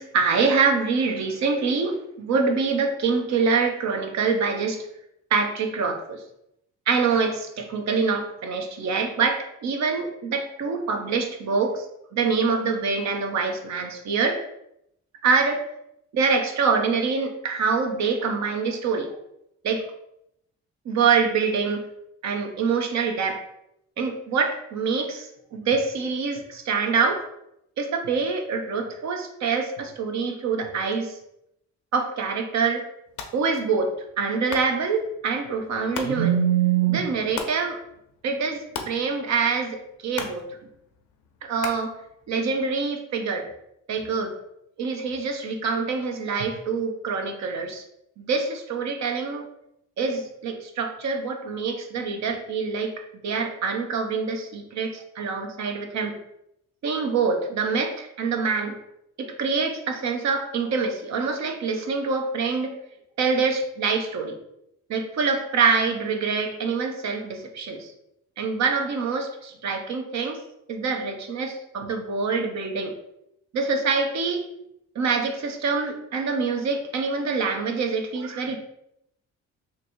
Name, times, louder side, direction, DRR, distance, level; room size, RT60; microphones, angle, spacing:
voice 1, 0.0-4.9 5.3-6.2 6.9-11.9 12.1-14.4 15.2-15.6 16.1-19.1 19.6-19.8 20.9-21.9 22.2-23.4 24.0-27.3 27.8-31.1 31.9-32.8 33.3-37.8 38.2-40.4 41.4-41.9 42.3-43.5 43.9-44.3 44.8-47.8 48.2-49.5 50.0-52.9 53.2-56.2 56.8-58.8 59.2-62.8 63.2-64.4 64.9-67.9 68.4-70.4 70.7-72.9 73.5-74.5 74.9-78.6, right 5 dB, 65° right, 4 dB, 0.7 m, -25 dB
sound 1, 33.1-42.8, left 5 dB, 80° left, 0.6 m, -41 dB
3.0 x 2.7 x 4.3 m, 0.79 s
cardioid pair, 90°, 30 cm